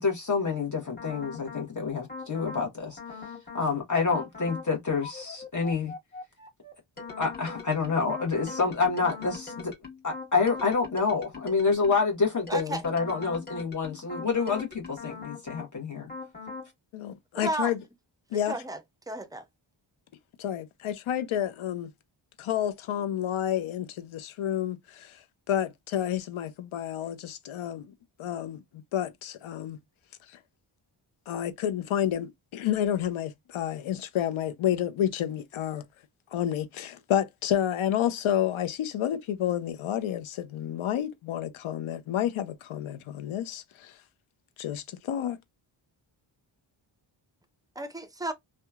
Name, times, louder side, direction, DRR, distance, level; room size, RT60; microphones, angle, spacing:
voice 1, 0.0-3.0 3.5-5.9 7.2-9.7 10.0-16.1, left 4 dB, 40° left, 1.0 m, -28 dB
sound 1, 1.0-1.7 2.1-2.7 3.0-3.7 4.1-4.7 5.0-12.1 12.5-15.7 16.1-16.7, left 4 dB, 20° left, 1.4 m, -42 dB
voice 2, 12.5-12.8 17.3-17.7 18.3-19.5 47.8-48.3, right 2 dB, 10° right, 0.4 m, -33 dB
voice 3, 16.9-17.8 18.3-18.5 20.4-21.9 22.4-27.9 28.2-28.6 28.9-29.8 30.3-30.4 31.3-35.8 36.3-44.0 44.6-45.4, left 10 dB, 75° left, 0.6 m, -30 dB
2.8 x 2.2 x 2.2 m
cardioid pair, 80°, 49 cm